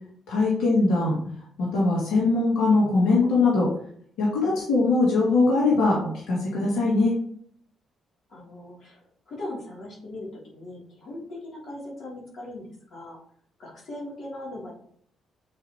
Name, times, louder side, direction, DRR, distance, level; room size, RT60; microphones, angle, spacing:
voice 1, 0.3-1.2 1.6-3.7 4.2-7.1, left 3 dB, 90° left, -5 dB, 2.2 m, -21 dB
voice 2, 8.3-13.2 13.6-14.7, left 1 dB, 55° left, -5 dB, 3.0 m, -39 dB
7.7 x 4.6 x 3.0 m, 0.62 s
cardioid pair, 90°, 0 cm